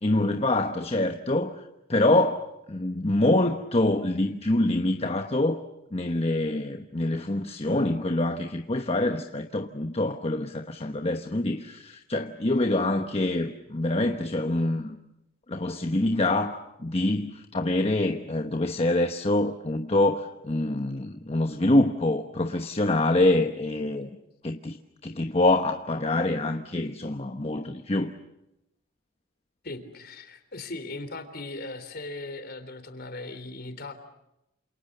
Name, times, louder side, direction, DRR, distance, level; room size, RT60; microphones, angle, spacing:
voice 1, 0.0-5.6 5.9-15.0 15.5-24.1 24.4-24.8 25.0-28.1, left 2 dB, 30° left, 1.1 m, -25 dB
voice 2, 29.6-33.9, left 2 dB, 50° left, 3.6 m, -38 dB
28.5 x 28.0 x 6.8 m
head